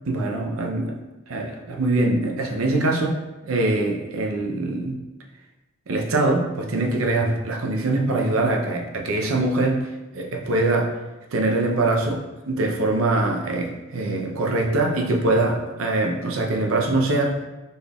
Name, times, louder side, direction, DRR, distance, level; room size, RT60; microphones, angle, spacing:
voice 1, 0.1-1.0 1.3-5.0 5.9-9.8 10.1-10.9 11.3-17.4, right 2 dB, 80° right, 1 dB, 0.6 m, -23 dB
4.2 x 2.3 x 3.4 m, 1.1 s
head